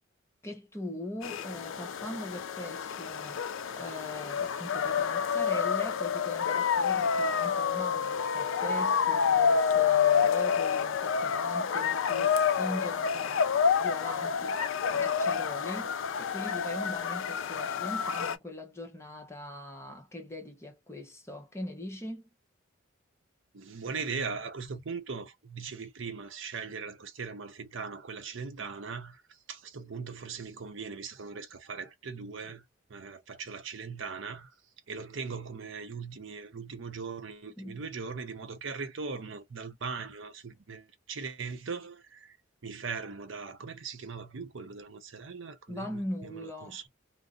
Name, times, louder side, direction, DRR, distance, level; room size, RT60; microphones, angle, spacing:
voice 1, 0.4-13.5 13.8-22.3 37.6-37.8 45.7-46.8, left 1 dB, 15° left, 0.8 m, -41 dB
sound 1, 1.2-18.4, left 6 dB, 70° left, 0.4 m, -28 dB
voice 2, 23.5-32.6 32.9-34.5 34.9-42.4 42.6-46.9, right 5 dB, 65° right, 0.6 m, -40 dB
2.5 x 2.0 x 3.7 m
head